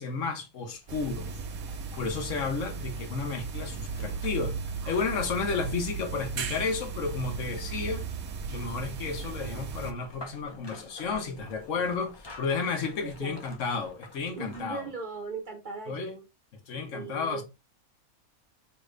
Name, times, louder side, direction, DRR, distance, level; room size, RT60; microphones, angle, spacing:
voice 1, 0.0-1.4 2.0-8.0 8.5-14.9 15.9-16.1 16.7-17.4, left 4 dB, 60° left, 1.2 m, -32 dB
sound 1, 0.7-6.9 8.5-14.9 15.2-15.3, left 2 dB, 30° left, 0.5 m, -51 dB
sound 2, 0.9-9.9, right 5 dB, 80° right, 1.1 m, -36 dB
voice 2, 13.0-13.4 14.4-16.2 16.9-17.4, right 4 dB, 40° right, 0.8 m, -38 dB
5.4 x 2.5 x 3.2 m
omnidirectional pair, 1.5 m